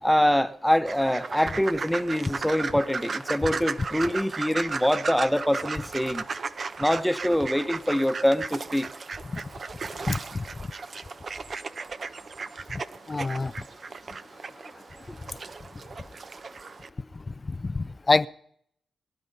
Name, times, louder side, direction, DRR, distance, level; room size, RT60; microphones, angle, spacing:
voice 1, 0.0-6.3 6.8-8.9, equal, 5° left, 1.2 m, -24 dB
sound 1, 0.9-16.9, right 4 dB, 55° right, 1.0 m, -36 dB
voice 2, 10.1-10.4 12.7-12.8 13.1-13.5 17.4-18.3, left 3 dB, 35° left, 0.6 m, -26 dB
22.0 x 11.5 x 5.5 m
cardioid pair, 55°, 0 cm